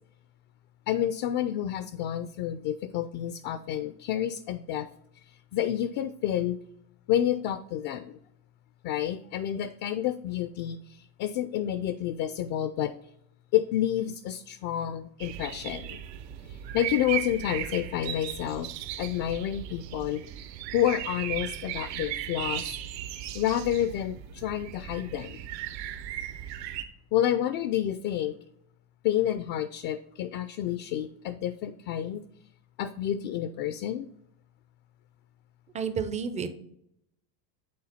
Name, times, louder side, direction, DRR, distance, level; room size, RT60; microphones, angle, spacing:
voice 1, 0.9-4.9 5.1-6.6 7.1-8.2 8.8-13.1 13.5-16.0 16.4-18.7 19.0-20.3 20.7-22.7 23.3-25.5 27.1-28.4 29.0-32.2 32.8-34.1, left 11 dB, 50° left, 12 dB, 0.5 m, -29 dB
sound 1, 15.2-26.8, right 11 dB, 80° right, 1.0 m, -37 dB
voice 2, 35.7-36.5, right 6 dB, 15° right, 10 dB, 0.3 m, -30 dB
8.7 x 3.6 x 4.2 m, 0.76 s
supercardioid pair, 110°, 50 cm